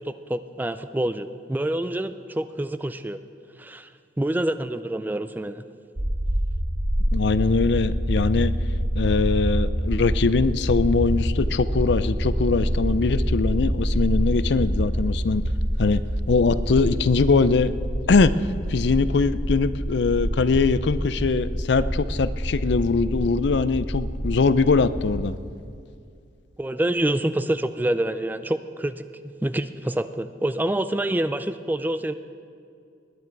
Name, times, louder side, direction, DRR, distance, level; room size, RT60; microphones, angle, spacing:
voice 1, 0.0-3.2 3.6-3.9 4.2-5.6 26.6-32.1, right 1 dB, 10° right, 11 dB, 0.3 m, -27 dB
sound 1, 6.0-25.2, equal, 35° right, 1.3 m, -26 dB
voice 2, 7.1-8.5 8.9-15.4 15.8-16.0 16.3-17.7 18.1-18.3 18.7-25.3, left 4 dB, 60° left, 15 dB, 0.5 m, -22 dB
20.5 x 9.8 x 4.6 m, 2.4 s
head